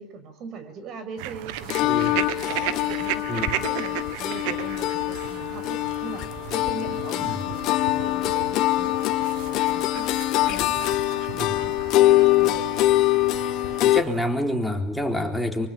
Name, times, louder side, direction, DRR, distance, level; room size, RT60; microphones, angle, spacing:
voice 1, 0.0-10.1 10.5-10.9 11.3-11.8 12.0-12.8, right 4 dB, 45° right, 10 dB, 6.3 m, -41 dB
sound 1, 1.2-14.3, right 13 dB, 65° right, 1.5 m, -35 dB
sound 2, 1.7-14.0, left 16 dB, 50° left, 1.1 m, -23 dB
voice 2, 1.8-2.1 3.3-3.5 7.2-7.4 11.4-11.6 13.8-15.7, left 1 dB, ahead, 2 dB, 3.9 m, -27 dB
24.5 x 24.0 x 9.0 m, 0.92 s
supercardioid pair, 125°, 0 cm